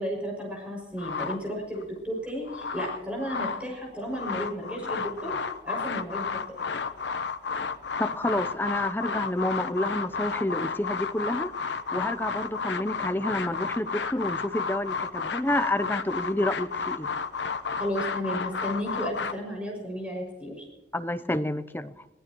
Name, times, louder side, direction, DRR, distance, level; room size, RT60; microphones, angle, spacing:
voice 1, 0.0-5.3 5.6-6.4 17.8-20.7, equal, 5° right, 6.4 m, -33 dB
sound 1, 1.0-1.8 2.3-3.7 4.0-19.3, left 5 dB, 75° left, 0.8 m, -32 dB
voice 2, 8.0-11.5 11.9-17.1 20.9-21.9, left 1 dB, 10° left, 0.6 m, -29 dB
24.0 x 16.5 x 3.0 m
head